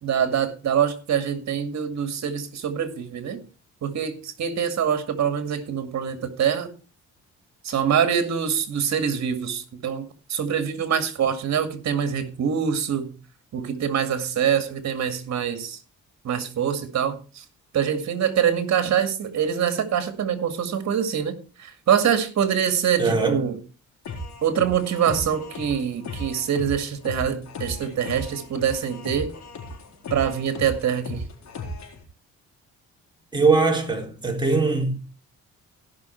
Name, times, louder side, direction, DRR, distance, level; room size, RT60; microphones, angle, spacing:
voice 1, 0.0-3.4 3.8-6.7 7.6-13.1 13.5-15.8 16.2-17.4 17.7-23.6 24.4-29.3 30.1-31.2, right 8 dB, 60° right, 2.2 m, -24 dB
voice 2, 23.0-23.5 33.3-35.0, right 4 dB, 15° right, 4.0 m, -21 dB
sound 1, 24.0-32.0, left 2 dB, 65° left, 4.2 m, -36 dB
16.5 x 6.2 x 4.5 m
cardioid pair, 90°, 30 cm